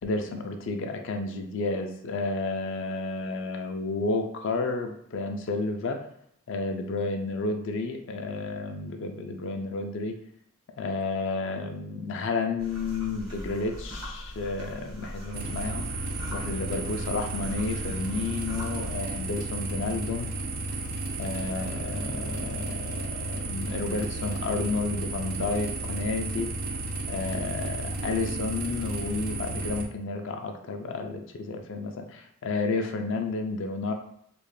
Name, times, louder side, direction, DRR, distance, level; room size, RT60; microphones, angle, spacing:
voice 1, 0.0-6.1 6.5-10.2 10.8-20.3 21.2-26.5 27.1-33.9, left 3 dB, 55° left, 4 dB, 0.4 m, -31 dB
sound 1, 12.6-19.0, equal, 80° right, 1.0 m, -41 dB
sound 2, 15.3-29.9, right 2 dB, 40° right, 0.3 m, -33 dB
2.5 x 2.1 x 3.2 m, 0.69 s
head